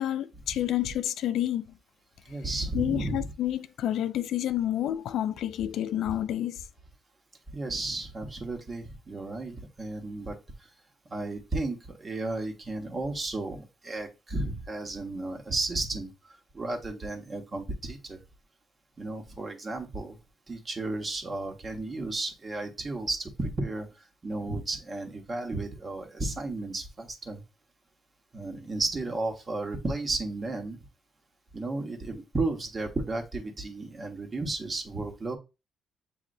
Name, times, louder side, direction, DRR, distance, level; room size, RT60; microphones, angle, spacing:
voice 1, 0.0-1.6 2.7-6.6, left 12 dB, 75° left, 0.3 m, -29 dB
voice 2, 2.2-3.3 7.5-10.4 11.1-18.2 19.0-20.2 20.5-27.4 28.3-30.8 31.5-35.4, right 2 dB, 35° right, 1.3 m, -33 dB
7.4 x 2.7 x 2.6 m
cardioid pair, 90°, 0 cm